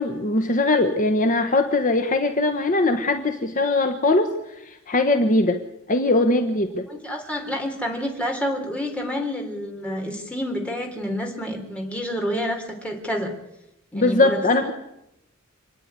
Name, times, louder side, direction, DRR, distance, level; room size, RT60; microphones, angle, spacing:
voice 1, 0.0-4.4 4.7-5.6 5.9-6.9 13.9-14.7, left 2 dB, 40° left, 6 dB, 1.2 m, -21 dB
voice 2, 6.9-13.3 13.9-14.4, equal, 5° left, 1 dB, 3.8 m, -28 dB
27.0 x 10.0 x 9.7 m, 0.88 s
head